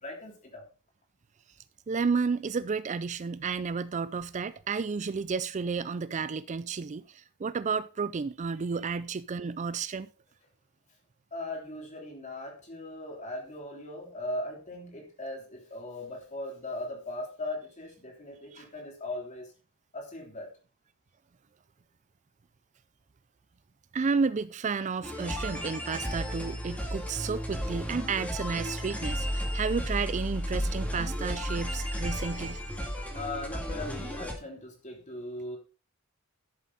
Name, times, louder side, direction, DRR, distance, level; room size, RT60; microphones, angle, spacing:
voice 1, 0.0-0.6 11.3-19.5 19.9-20.5 25.3-25.4 33.1-35.6, left 1 dB, 35° left, 3.3 m, -39 dB
voice 2, 1.9-10.1 18.5-18.6 23.9-32.6, right 5 dB, 35° right, 0.4 m, -32 dB
sound 1, 25.0-34.3, equal, 5° left, 2.3 m, -33 dB
12.5 x 7.2 x 4.1 m
head